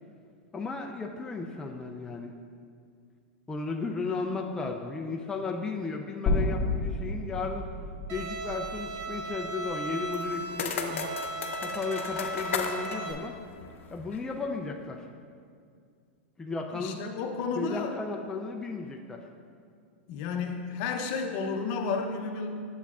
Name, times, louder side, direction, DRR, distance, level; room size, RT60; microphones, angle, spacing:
voice 1, 0.5-2.3 3.5-7.7 8.1-11.1 11.6-13.4 13.9-15.1 16.4-17.0 17.6-19.2, left 4 dB, 10° left, 1 dB, 0.4 m, -34 dB
sound 1, 6.3-10.5, left 2 dB, 25° left, 1.3 m, -32 dB
Bowed string instrument, 8.1-13.1, right 2 dB, 40° right, 0.9 m, -36 dB
sound 2, 10.1-14.3, left 6 dB, 85° left, 0.6 m, -36 dB
voice 2, 16.7-18.0 20.1-22.6, left 5 dB, 50° left, 4 dB, 0.7 m, -32 dB
8.2 x 6.9 x 2.4 m, 2.2 s
hypercardioid pair, 125°, 7 cm